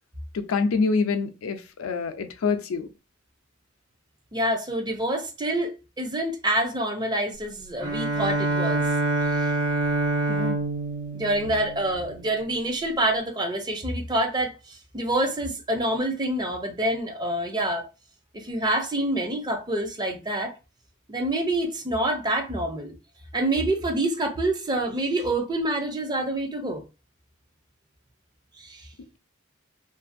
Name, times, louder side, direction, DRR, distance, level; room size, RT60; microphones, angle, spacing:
voice 1, 0.3-2.9 10.3-10.6, left 4 dB, 80° left, 0.4 m, -26 dB
voice 2, 4.3-8.9 11.1-14.5 14.9-17.9 18.3-20.5 21.1-22.9 23.3-26.8 28.6-28.8, right 1 dB, 20° right, 0.5 m, -26 dB
Bowed string instrument, 7.8-12.4, right 2 dB, 75° right, 1.3 m, -26 dB
2.5 x 2.4 x 2.5 m
head